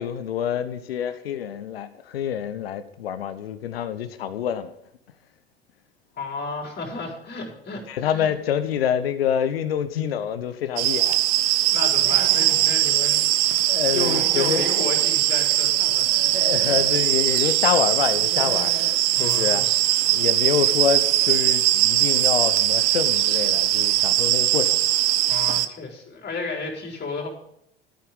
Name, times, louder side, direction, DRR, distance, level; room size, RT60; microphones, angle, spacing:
voice 1, 0.0-4.7 7.9-11.2 13.7-14.7 15.9-18.7 19.2-19.7 20.1-24.8, left 9 dB, 75° left, 1.1 m, -26 dB
voice 2, 6.1-8.3 11.4-13.6 13.9-16.4 19.1-19.7 25.3-27.3, left 3 dB, 35° left, 4.8 m, -33 dB
sound 1, 10.8-25.7, right 15 dB, 60° right, 1.0 m, -21 dB
Human voice / Animal, 11.9-12.7 13.9-14.9 16.1-17.0 18.1-19.0, right 3 dB, 25° right, 3.5 m, -37 dB
13.5 x 9.3 x 5.4 m
figure-of-eight pair, 65°, 30 cm